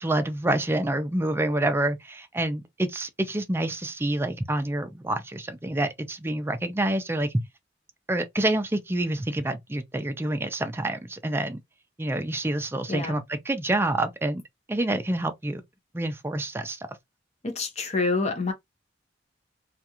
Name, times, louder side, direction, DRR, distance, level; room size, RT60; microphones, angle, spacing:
voice 1, 0.0-7.3 8.1-11.6 12.0-14.4 14.7-15.6 15.9-16.8, right 1 dB, 15° right, 0.4 m, -27 dB
voice 2, 12.9-13.2 17.4-18.5, left 3 dB, 40° left, 0.8 m, -27 dB
2.4 x 2.3 x 2.8 m
head